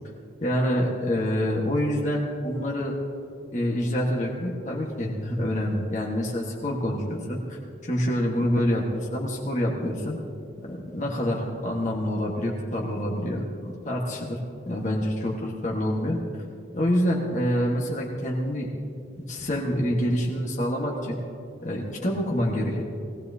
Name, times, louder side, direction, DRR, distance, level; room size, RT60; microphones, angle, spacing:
voice 1, 0.4-2.9 3.5-10.2 10.6-13.4 13.8-14.4 14.6-16.2 16.7-18.7 19.2-21.2 21.6-22.8, equal, 40° left, -2 dB, 1.5 m, -26 dB
20.5 x 18.0 x 2.8 m, 2.6 s
head